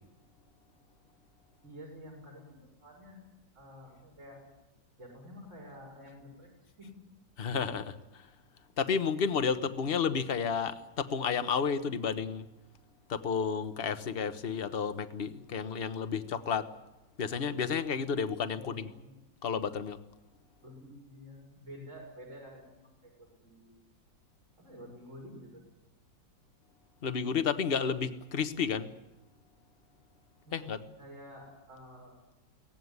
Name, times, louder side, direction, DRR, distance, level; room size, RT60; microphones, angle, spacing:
voice 1, 1.6-3.2 3.5-4.4 5.0-6.9 18.5-19.2 20.6-23.7 24.6-25.6 30.4-32.4, equal, 45° right, 1 dB, 6.5 m, -50 dB
voice 2, 7.4-8.0 8.8-12.5 13.1-16.7 17.2-18.9 19.4-20.0 27.0-28.9 30.5-30.8, left 6 dB, 35° left, 10 dB, 1.2 m, -31 dB
23.0 x 18.0 x 9.7 m, 1.0 s
omnidirectional pair, 1.9 m